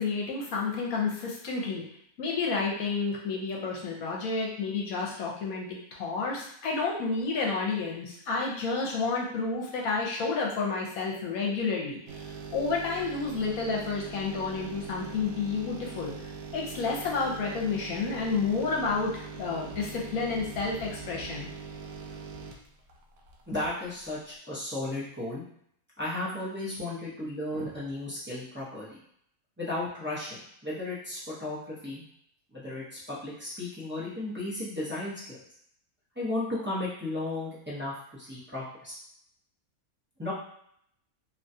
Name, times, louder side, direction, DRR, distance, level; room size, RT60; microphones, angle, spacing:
voice 1, 0.0-1.8 2.2-12.3 12.5-16.1 16.5-21.5, left 4 dB, 75° left, -2 dB, 1.1 m, -30 dB
sound 1, 12.1-23.7 24.0-24.1, right 5 dB, 80° right, 1.1 m, -42 dB
voice 2, 23.5-25.4 26.0-29.0 29.6-32.0 32.5-35.4 36.1-38.9 40.2-40.3, left 2 dB, 10° right, -9 dB, 0.5 m, -34 dB
2.9 x 2.3 x 2.7 m, 0.69 s
omnidirectional pair, 1.5 m